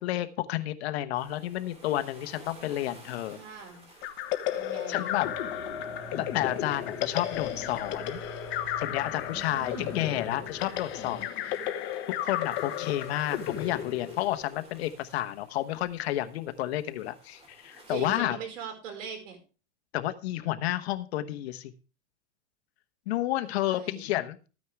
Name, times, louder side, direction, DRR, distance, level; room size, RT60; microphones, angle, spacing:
voice 1, 0.0-3.4 4.9-5.3 6.1-8.2 8.8-11.6 12.2-18.4 19.9-21.7 23.1-24.5, left 14 dB, 60° left, 10 dB, 1.1 m, -31 dB
sound 1, 1.1-18.2, right 1 dB, 15° right, 2.5 m, -56 dB
voice 2, 3.3-3.9 4.5-5.1 9.3-10.0 17.9-19.4 23.6-24.1, right 7 dB, 75° right, 4 dB, 5.4 m, -41 dB
sound 2, 4.0-14.6, left 11 dB, 30° left, 1.3 m, -34 dB
sound 3, 5.2-11.3, left 1 dB, 5° left, 6.0 m, -44 dB
14.0 x 9.4 x 3.5 m, 0.35 s
supercardioid pair, 145°, 37 cm